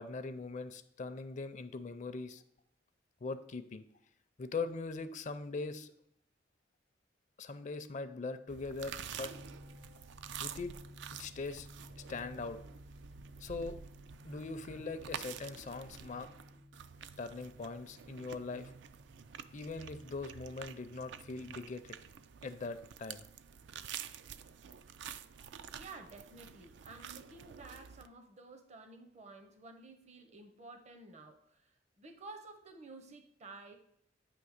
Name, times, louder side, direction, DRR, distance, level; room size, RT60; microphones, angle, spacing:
voice 1, 0.0-2.4 3.2-3.8 4.4-5.9 7.4-9.3 10.4-10.7 11.2-11.7 12.1-12.6 13.4-13.8 14.2-16.3 17.2-18.7 19.5-22.0 22.4-23.2, left 3 dB, 40° left, 11 dB, 0.5 m, -41 dB
sound 1, 7.7-22.8, left 1 dB, 90° right, 1.3 m, -58 dB
sound 2, 8.5-28.1, right 8 dB, 70° right, 0.4 m, -49 dB
voice 2, 25.7-33.8, right 3 dB, 40° right, 6 dB, 0.7 m, -52 dB
9.3 x 3.1 x 6.4 m, 0.69 s
head